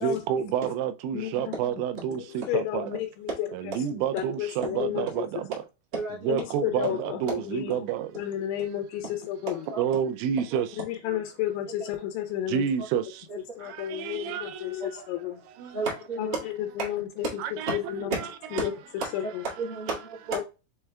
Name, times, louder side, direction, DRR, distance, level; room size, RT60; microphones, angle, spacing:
voice 1, 0.0-3.0 3.5-5.6 6.2-8.1 9.8-10.7 12.5-13.3 13.6-14.8 15.6-15.8 17.4-17.8, right 9 dB, 85° right, 2.8 m, -29 dB
voice 2, 1.1-1.5 2.3-3.5 4.1-5.2 6.3-7.8 8.2-9.6 10.9-12.7 13.6-15.4 16.2-17.3 17.7-18.1 18.5-18.7 19.1-19.4 20.3-20.4, left 12 dB, 85° left, 3.0 m, -32 dB
voice 3, 5.9-6.3 9.5-9.8 10.4-10.6 11.1-11.2 13.3-13.4 15.7-16.4 16.8-16.9 17.7-18.1 19.2-19.3 19.6-20.4, right 4 dB, 60° right, 1.1 m, -33 dB
7.0 x 3.4 x 2.2 m
omnidirectional pair, 5.2 m